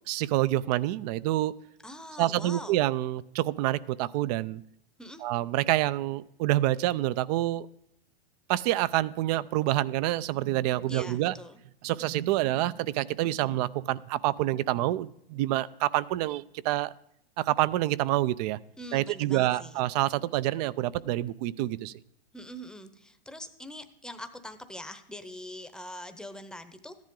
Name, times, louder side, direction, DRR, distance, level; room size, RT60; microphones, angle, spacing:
voice 1, 0.1-1.5 2.2-4.6 5.2-7.7 8.5-11.3 11.8-16.9 17.4-18.6 18.9-22.0, right 15 dB, 40° right, 19 dB, 0.5 m, -27 dB
voice 2, 1.8-2.8 5.0-5.2 10.9-11.6 18.8-19.8 22.3-27.0, equal, ahead, 9 dB, 0.8 m, -43 dB
14.0 x 10.5 x 3.8 m, 0.76 s
hypercardioid pair, 115°, 30 cm